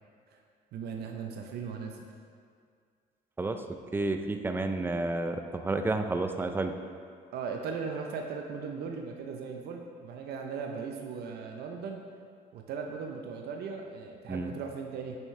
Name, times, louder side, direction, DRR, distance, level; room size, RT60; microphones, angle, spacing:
voice 1, 0.7-2.1 7.3-12.0 12.5-15.2, right 5 dB, 70° right, 2 dB, 0.8 m, -38 dB
voice 2, 3.9-6.8 14.3-14.5, right 2 dB, 10° right, 6 dB, 0.5 m, -30 dB
8.8 x 6.2 x 3.3 m, 2.2 s
cardioid pair, 110°, 17 cm